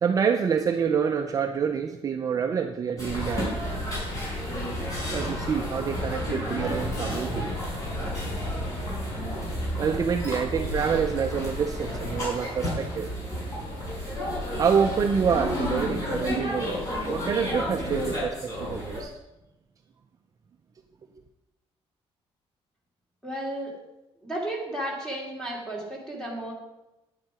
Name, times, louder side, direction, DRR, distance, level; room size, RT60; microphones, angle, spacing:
voice 1, 0.0-3.5 5.1-7.5 9.8-13.1 14.6-16.8 17.1-19.1, right 6 dB, 35° right, 5 dB, 0.6 m, -27 dB
sound 1, 3.0-19.0, equal, 35° left, 4.9 m, -31 dB
voice 2, 23.2-23.7 24.2-26.5, right 1 dB, 5° left, -2 dB, 2.9 m, -33 dB
9.9 x 9.4 x 4.9 m, 0.97 s
cardioid pair, 175°, 11 cm